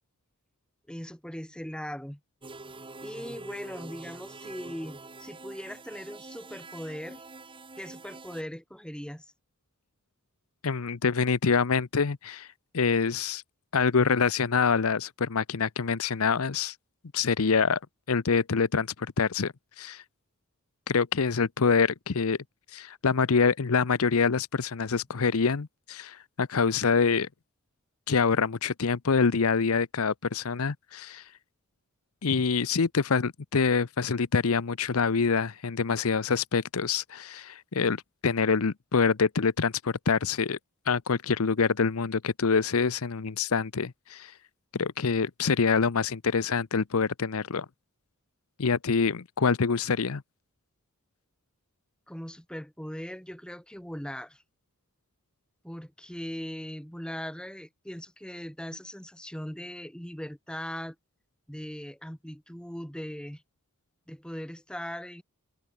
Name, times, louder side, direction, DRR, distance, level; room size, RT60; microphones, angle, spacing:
voice 1, 0.9-2.2 3.0-7.2 7.8-9.3 32.3-32.4 52.1-54.4 55.6-61.0 61.5-63.4 64.1-65.2, equal, 5° left, 2.2 m, -39 dB
sound 1, 2.4-8.4, right 3 dB, 25° right, 1.3 m, -45 dB
voice 2, 10.6-12.5 12.7-13.4 13.7-16.7 17.1-17.8 18.1-20.0 20.9-22.4 22.7-27.3 28.1-31.2 32.2-40.6 40.9-44.3 44.7-47.7 48.6-50.2, left 5 dB, 65° left, 0.7 m, -26 dB
head